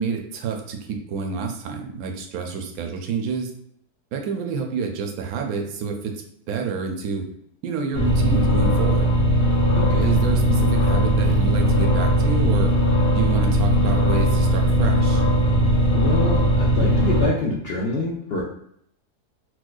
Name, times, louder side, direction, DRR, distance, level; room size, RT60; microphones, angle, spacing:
voice 1, 0.0-3.5 4.1-7.3 7.6-9.1 10.0-12.7 13.2-15.2, right 5 dB, 75° right, 3 dB, 1.0 m, -28 dB
sound 1, 7.9-17.3, equal, 60° left, 1.3 m, -19 dB
voice 2, 9.8-10.1 15.9-18.4, left 2 dB, 80° left, -4 dB, 0.5 m, -26 dB
4.4 x 2.1 x 2.3 m, 0.71 s
omnidirectional pair, 1.7 m